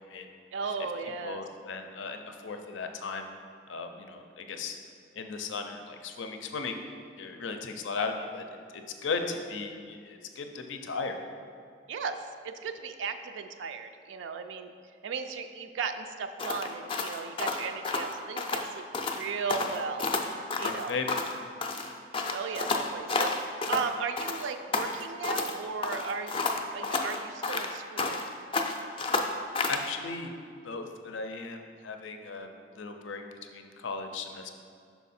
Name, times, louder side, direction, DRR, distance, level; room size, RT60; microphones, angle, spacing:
voice 1, 0.5-1.4 11.9-12.2 12.4-14.7 15.0-20.1 20.6-21.0 22.3-23.3 23.7-26.5 26.7-28.2, right 5 dB, 80° right, 7 dB, 0.3 m, -36 dB
voice 2, 1.2-3.3 3.7-4.8 5.1-6.8 7.2-8.4 9.0-11.2 20.6-21.2 29.7-30.3 30.6-32.5 32.8-33.2 33.5-34.5, left 4 dB, 85° left, 6 dB, 0.5 m, -36 dB
sound 1, 16.4-18.7 18.9-19.2 19.5-21.4 21.6-23.9 24.2-25.5 25.8-28.3 28.5-29.9, left 3 dB, 30° left, 0.4 m, -31 dB
5.7 x 4.6 x 4.2 m, 2.2 s
head